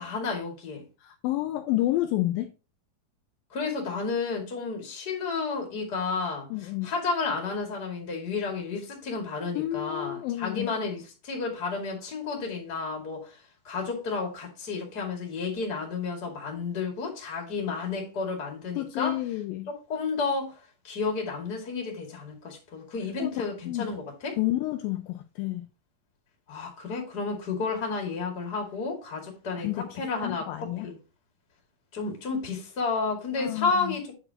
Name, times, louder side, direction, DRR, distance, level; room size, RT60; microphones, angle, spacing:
voice 1, 0.0-0.8 3.5-6.5 6.8-13.4 13.6-19.1 19.7-20.5 20.8-24.4 26.5-31.0 31.9-34.1, left 4 dB, 30° left, 2.3 m, -31 dB
voice 2, 1.0-2.5 6.5-6.9 9.5-10.7 18.8-19.7 23.2-23.9 24.4-25.7 29.6-30.9 33.4-34.0, left 16 dB, 80° left, 2.2 m, -30 dB
8.8 x 6.8 x 2.9 m
omnidirectional pair, 4.3 m